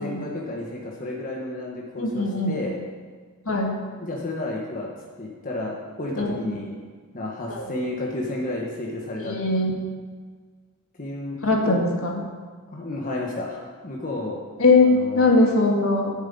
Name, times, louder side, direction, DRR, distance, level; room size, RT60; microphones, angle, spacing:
voice 1, 0.0-2.8 4.0-4.9 5.2-6.8 7.1-9.3 11.0-11.4 11.6-11.8 12.7-14.4 14.9-15.3, left 2 dB, 40° left, -2 dB, 1.4 m, -31 dB
voice 2, 2.0-2.5 3.4-3.8 6.1-6.3 7.5-7.6 9.2-9.7 11.4-12.2 14.6-14.9 15.1-16.1, left 3 dB, 65° left, 0 dB, 1.8 m, -20 dB
8.1 x 7.3 x 8.6 m, 1.5 s
head